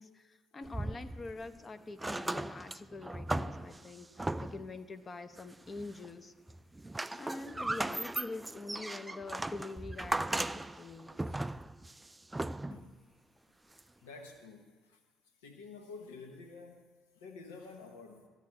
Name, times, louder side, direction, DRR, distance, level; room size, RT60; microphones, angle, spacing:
voice 1, 0.0-6.3 7.2-11.2, left 3 dB, 35° left, 10 dB, 0.8 m, -45 dB
sound 1, 0.6-1.6 1.9-4.8 5.4-6.1 6.5-12.9 13.8-13.9, right 2 dB, 15° right, 0.3 m, -37 dB
voice 2, 12.7-13.1 14.0-15.0 15.4-18.3, left 4 dB, 85° left, 5 dB, 1.0 m, -50 dB
14.0 x 4.9 x 8.7 m, 1.5 s
hypercardioid pair, 60°, 0 cm